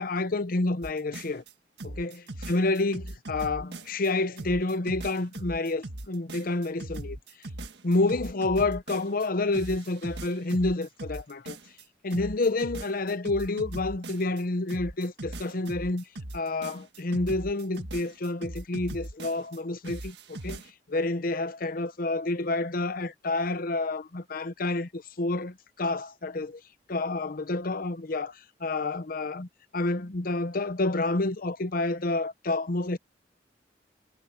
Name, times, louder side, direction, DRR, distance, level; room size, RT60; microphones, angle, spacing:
voice 1, 0.0-1.4 1.8-2.2 2.5-7.2 7.8-11.6 12.0-16.0 16.3-20.6 20.9-26.6 26.9-29.5 29.7-33.0, left 2 dB, 55° left, 0.8 m, -29 dB
sound 1, 0.8-1.5 1.8-4.1 4.4-9.3 9.5-11.8 12.1-14.4 14.7-19.6 19.8-20.7, right 1 dB, 65° right, 1.7 m, -39 dB
head